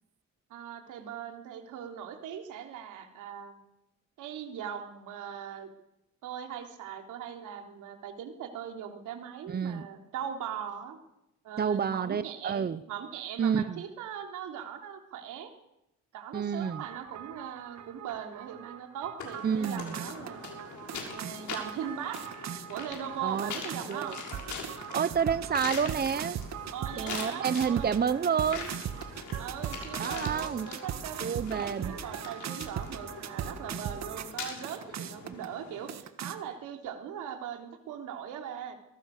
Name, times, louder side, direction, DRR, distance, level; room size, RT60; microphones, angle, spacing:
voice 1, 0.5-3.6 4.2-5.7 6.2-11.0 11.4-15.5 16.1-20.4 21.1-22.2 22.7-24.2 26.7-28.1 29.4-31.2 31.5-38.8, right 8 dB, 90° right, 4 dB, 3.5 m, -40 dB
voice 2, 9.5-9.8 11.6-12.8 13.4-13.8 16.3-16.8 19.4-19.9 23.2-23.5 23.9-24.2 24.9-26.4 27.0-28.8 30.0-30.7 31.2-31.9 35.2-35.3, right 7 dB, 30° right, 14 dB, 0.9 m, -29 dB
sound 1, 16.6-34.3 34.6-35.5 35.9-36.4, right 8 dB, 65° right, 1.8 m, -39 dB
sound 2, 19.2-35.9, left 5 dB, 70° left, 6.5 m, -43 dB
23.0 x 19.0 x 6.7 m, 0.85 s
cardioid pair, 90°, 30 cm